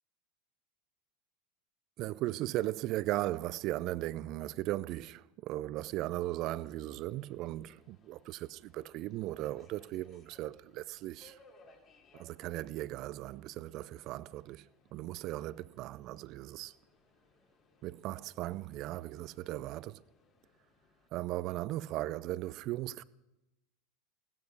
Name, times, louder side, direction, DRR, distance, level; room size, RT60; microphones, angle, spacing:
voice 1, 2.0-11.4 12.1-16.7 17.8-20.0 21.1-23.0, right 16 dB, 50° right, 0.4 m, -37 dB
Subway metro underground, 6.5-21.1, left 2 dB, 40° left, 2.9 m, -66 dB
16.0 x 13.0 x 4.8 m
hypercardioid pair, 95°, 0 cm